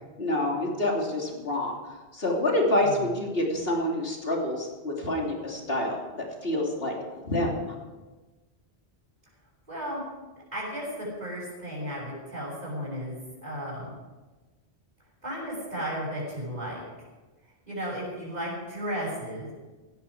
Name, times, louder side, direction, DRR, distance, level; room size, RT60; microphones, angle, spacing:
voice 1, 0.2-1.8 2.1-7.7, left 1 dB, 65° left, -1 dB, 3.5 m, -27 dB
voice 2, 9.7-10.0 10.5-14.0 15.2-16.8 17.7-19.5, equal, 40° right, -8 dB, 6.5 m, -34 dB
18.0 x 13.5 x 5.0 m, 1.2 s
omnidirectional pair, 1.1 m